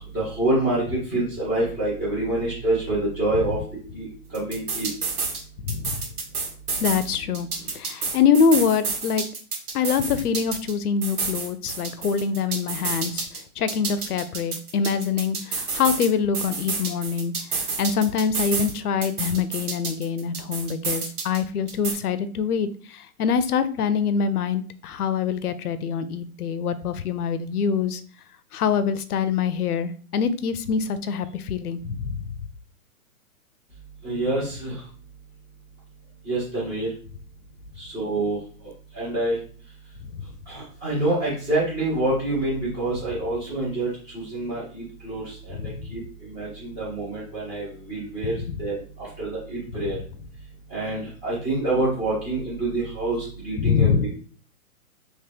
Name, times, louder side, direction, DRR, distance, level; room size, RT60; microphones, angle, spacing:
voice 1, 0.1-3.6 3.9-4.9 34.0-34.8 36.3-36.9 37.8-38.4 39.0-39.4 40.5-43.9 44.1-48.3 48.6-50.0 50.7-54.1, right 2 dB, 10° right, -10 dB, 0.6 m, -27 dB
sound 1, 4.3-5.4 5.7-7.1 7.3-10.7 11.0-13.4 13.7-16.1 16.3-18.7 19.0-21.4 21.7-21.9, right 4 dB, 85° right, 1.5 m, -29 dB
voice 2, 5.6-6.0 6.8-9.3 9.7-28.0 28.5-32.3 40.1-40.2 45.6-45.8 48.2-48.6 53.6-54.1, left 6 dB, 80° left, 13 dB, 0.6 m, -25 dB
3.0 x 2.9 x 3.4 m, 0.43 s
hypercardioid pair, 155°, 45 cm